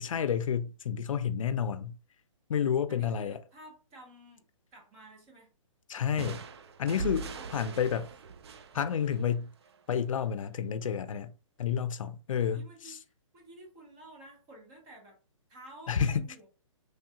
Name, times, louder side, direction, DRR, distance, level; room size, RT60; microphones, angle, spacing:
voice 1, 0.0-2.0 2.5-3.4 5.9-6.4 6.8-8.1 8.7-9.5 9.9-11.3 11.6-13.0 15.9-16.3, left 8 dB, 85° left, 0.4 m, -30 dB
voice 2, 2.9-4.4 4.7-5.5 7.2-7.8 12.4-13.0 13.3-15.2 15.5-16.5, right 2 dB, 15° right, 0.7 m, -52 dB
sound 1, 6.2-9.8, right 5 dB, 55° right, 0.4 m, -41 dB
3.2 x 2.3 x 2.8 m
hypercardioid pair, 170°, 17 cm